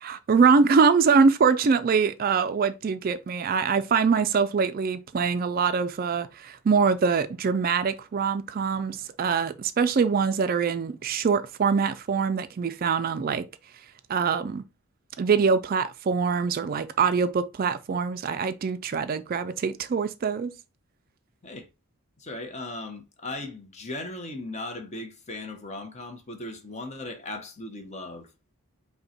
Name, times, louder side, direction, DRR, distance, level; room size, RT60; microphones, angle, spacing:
voice 1, 0.0-13.5 14.1-14.6 15.2-20.5, right 5 dB, 40° right, 0.3 m, -23 dB
voice 2, 22.2-28.3, left 2 dB, 30° left, 0.8 m, -37 dB
5.3 x 2.2 x 4.2 m
head